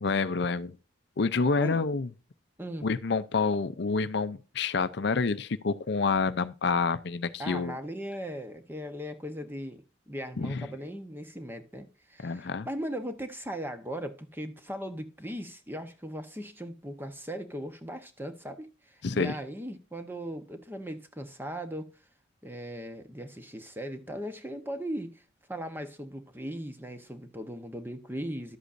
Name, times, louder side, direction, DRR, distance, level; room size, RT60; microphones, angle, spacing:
voice 1, 0.0-0.7 1.2-2.1 2.8-7.8 10.4-10.6 12.2-12.7 19.0-19.3, left 4 dB, 55° left, 0.5 m, -28 dB
voice 2, 7.4-21.9 22.4-25.2 25.5-28.6, equal, 10° right, 0.9 m, -38 dB
11.0 x 8.1 x 2.6 m
head